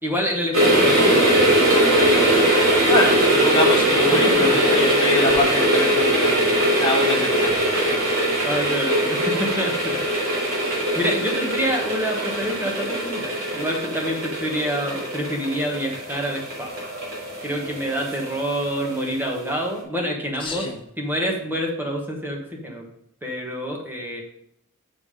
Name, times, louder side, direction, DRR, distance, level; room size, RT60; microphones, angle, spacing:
voice 1, 0.0-1.2 4.1-4.3 8.4-10.4 10.9-16.7 17.4-20.7 21.0-22.8 23.2-24.2, equal, 10° right, 0 dB, 1.2 m, -27 dB
sound 1, 0.5-19.2 19.5-19.6, right 1 dB, 70° right, 3.1 m, -21 dB
voice 2, 2.8-6.4 6.8-7.6 20.4-20.7, left 2 dB, 25° left, 0 dB, 1.4 m, -24 dB
7.1 x 5.3 x 5.0 m, 0.74 s
head